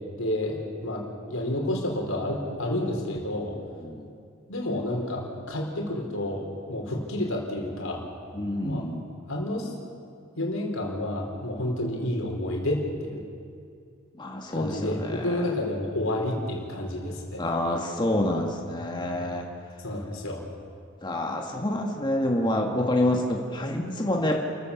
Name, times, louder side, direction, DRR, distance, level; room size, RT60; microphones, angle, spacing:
voice 1, 0.2-3.6 4.5-8.0 8.6-8.8 9.3-9.7 10.4-13.2 14.6-17.4 19.8-20.4, left 1 dB, 85° left, 0 dB, 4.4 m, -30 dB
voice 2, 8.3-9.0 14.2-15.5 17.4-19.5 21.0-24.4, left 1 dB, 20° left, 0 dB, 1.8 m, -27 dB
29.0 x 15.0 x 7.2 m, 2.3 s
head